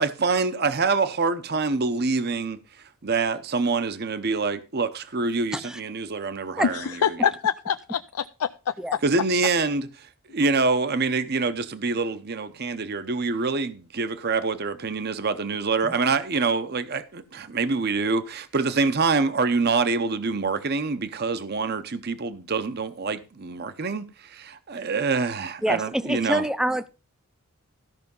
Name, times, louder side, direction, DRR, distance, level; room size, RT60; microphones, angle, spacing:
voice 1, 0.0-2.6 3.0-7.1 9.0-26.4, right 4 dB, 45° right, 0.7 m, -26 dB
voice 2, 6.6-9.0, left 8 dB, 90° left, 0.4 m, -26 dB
voice 3, 25.6-26.9, right 1 dB, 5° right, 0.4 m, -26 dB
13.5 x 5.7 x 5.3 m
head